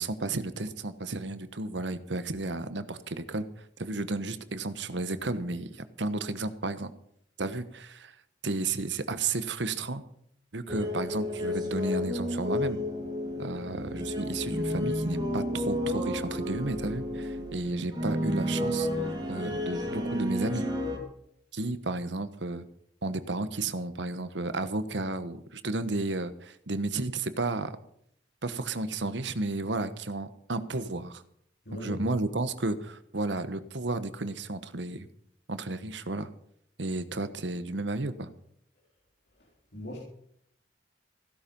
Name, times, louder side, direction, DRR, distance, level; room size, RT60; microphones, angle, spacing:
voice 1, 0.0-6.9 7.4-8.1 8.4-10.0 10.5-12.8 13.4-20.7 21.5-22.7 23.0-27.8 28.4-31.2 31.8-35.1 35.5-36.3 36.8-38.3, right 2 dB, 75° right, 12 dB, 1.2 m, -33 dB
sound 1, 10.7-21.0, left 1 dB, 25° right, 3.2 m, -31 dB
voice 2, 31.7-32.1 39.3-40.0, left 1 dB, 60° left, -3 dB, 3.8 m, -40 dB
16.0 x 11.5 x 5.4 m, 0.69 s
head